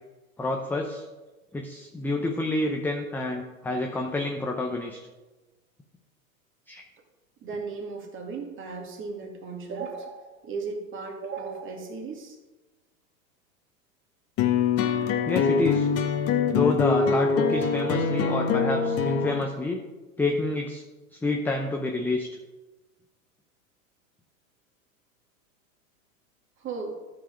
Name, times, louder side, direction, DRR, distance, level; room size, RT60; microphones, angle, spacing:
voice 1, 0.4-1.0 1.5-5.0 6.7-6.8 15.3-15.9 16.5-19.8 20.2-20.8 21.1-22.3, left 2 dB, 5° left, 2 dB, 0.6 m, -28 dB
voice 2, 7.4-12.4 26.6-27.0, right 4 dB, 30° right, 2 dB, 2.0 m, -36 dB
sound 1, 14.4-19.4, left 6 dB, 35° left, 1.1 m, -24 dB
13.0 x 4.7 x 5.1 m, 1.2 s
hypercardioid pair, 110°, 42 cm